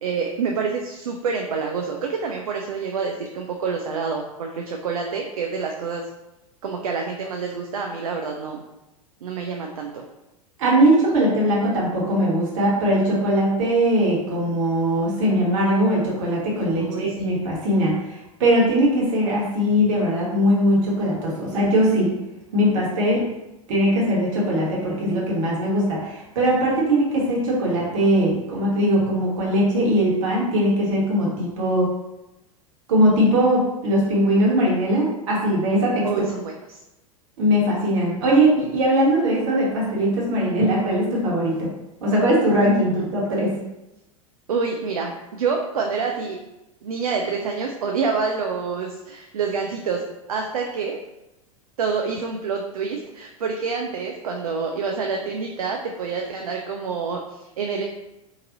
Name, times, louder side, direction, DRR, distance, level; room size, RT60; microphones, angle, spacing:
voice 1, 0.0-6.0 6.6-8.6 9.2-10.0 16.8-17.2 36.0-36.8 43.0-43.1 44.5-46.4 46.8-51.0 51.8-57.8, right 5 dB, 75° right, 2 dB, 0.4 m, -27 dB
voice 2, 10.6-22.1 22.5-23.3 23.7-31.9 32.9-36.1 37.4-41.7 42.0-43.5, equal, 60° right, -4 dB, 1.3 m, -20 dB
4.0 x 2.6 x 2.6 m, 0.94 s
figure-of-eight pair, 90°, 19 cm